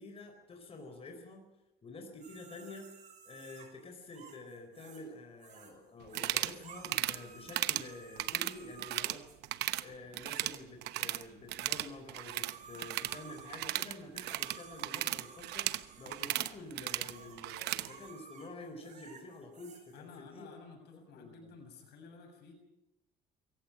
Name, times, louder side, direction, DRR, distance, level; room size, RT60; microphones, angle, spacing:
voice 1, 0.0-1.5 1.8-3.0 3.2-9.2 9.8-20.5 21.1-21.5, left 2 dB, 35° left, 4 dB, 4.6 m, -49 dB
sound 1, 2.2-5.1 5.4-5.7 6.1-9.4 10.2-10.3 11.9-20.2, right 6 dB, 45° right, 6.6 m, -54 dB
sound 2, 6.1-6.6 6.8-7.2 7.5-7.9 8.2-9.2 9.4-9.8 10.1-11.2 11.5-17.9, right 16 dB, 80° right, 0.9 m, -35 dB
voice 2, 19.9-22.5, left 4 dB, 80° left, 5 dB, 7.0 m, -53 dB
24.5 x 15.5 x 8.8 m, 0.92 s
cardioid pair, 110°, 17 cm